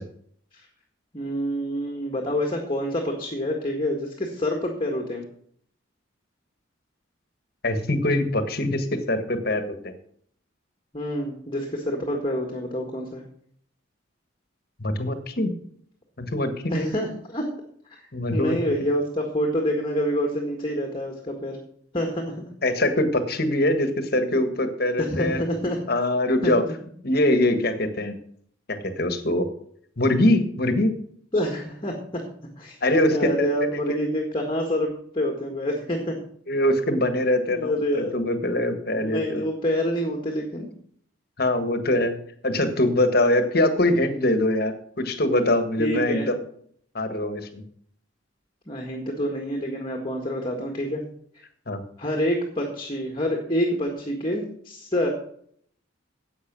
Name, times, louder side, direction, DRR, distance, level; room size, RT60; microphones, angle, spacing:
voice 1, 1.1-5.2 10.9-13.2 16.7-17.5 17.9-18.0 18.3-21.6 21.9-22.5 25.0-25.8 26.4-26.6 31.3-32.2 32.6-32.8 33.1-36.2 37.5-38.1 39.0-40.7 45.8-46.3 48.7-51.0 52.0-55.1, equal, 25° left, 2 dB, 1.8 m, -27 dB
voice 2, 7.6-9.9 14.8-15.5 16.2-16.9 18.1-18.6 22.6-25.4 25.9-26.6 27.0-28.2 28.7-29.5 30.0-30.9 32.8-33.5 36.5-39.4 41.4-42.2 42.4-46.4 46.9-47.6 51.7-51.8, left 1 dB, 50° left, 9 dB, 1.5 m, -23 dB
10.5 x 8.0 x 6.1 m, 0.62 s
head